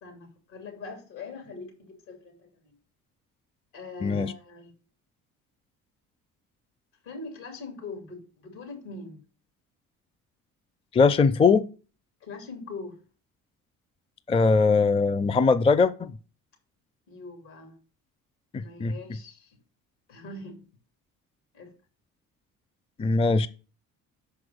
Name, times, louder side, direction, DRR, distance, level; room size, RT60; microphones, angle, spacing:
voice 1, 0.0-2.7 3.7-4.7 7.0-9.2 12.2-13.0 17.1-17.8 18.6-19.6 20.1-20.6 21.5-21.7, left 3 dB, 75° left, 2.9 m, -42 dB
voice 2, 4.0-4.3 10.9-11.6 14.3-16.1 18.5-18.9 23.0-23.5, left 4 dB, 15° left, 0.5 m, -21 dB
6.1 x 4.9 x 6.3 m
hypercardioid pair, 60°, 41 cm